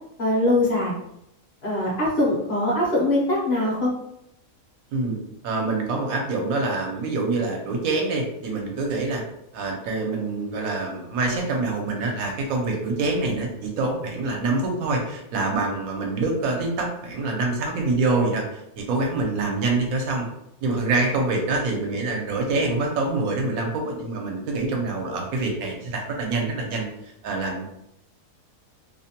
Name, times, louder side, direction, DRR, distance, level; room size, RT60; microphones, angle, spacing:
voice 1, 0.2-0.9 1.6-3.9, left 1 dB, 55° left, -4 dB, 0.8 m, -22 dB
voice 2, 5.4-9.2 9.5-20.3 20.6-27.7, right 3 dB, 80° right, 1 dB, 1.0 m, -25 dB
2.6 x 2.1 x 2.7 m, 0.80 s
omnidirectional pair, 1.5 m